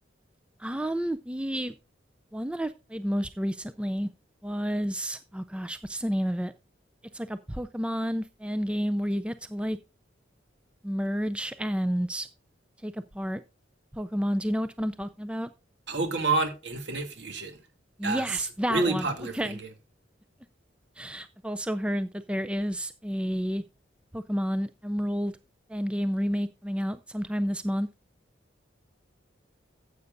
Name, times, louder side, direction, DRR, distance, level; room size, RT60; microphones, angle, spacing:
voice 1, 0.6-1.7 2.3-4.1 4.4-6.5 7.1-9.8 10.8-12.3 12.8-13.4 13.9-15.5 18.0-19.6 21.0-23.6 24.1-25.3 25.7-27.9, equal, 5° right, 0.4 m, -30 dB
voice 2, 15.9-17.6 18.0-18.2 18.7-19.3, right 3 dB, 60° right, 2.5 m, -28 dB
14.5 x 8.1 x 2.6 m
head